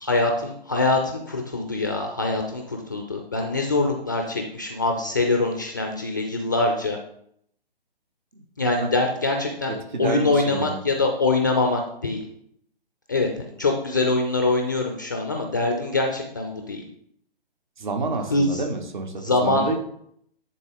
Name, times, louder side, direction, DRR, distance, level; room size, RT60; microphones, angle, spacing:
voice 1, 0.0-7.0 8.6-12.2 13.1-16.8 18.3-18.6 19.2-19.7, left 2 dB, 20° left, 3 dB, 0.4 m, -24 dB
voice 2, 9.7-10.8 17.8-19.8, right 3 dB, 50° right, 5 dB, 1.4 m, -29 dB
10.5 x 3.8 x 3.8 m, 0.69 s
figure-of-eight pair, 135°, 31 cm